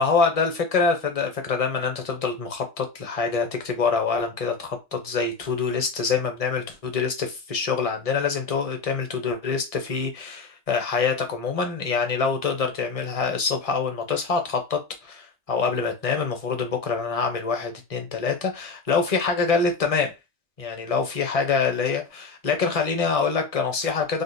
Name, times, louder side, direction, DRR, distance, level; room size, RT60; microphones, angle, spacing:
voice 1, 0.0-20.1 20.6-24.2, left 5 dB, 35° left, 0.7 m, -25 dB
3.8 x 2.4 x 2.6 m
omnidirectional pair, 1.2 m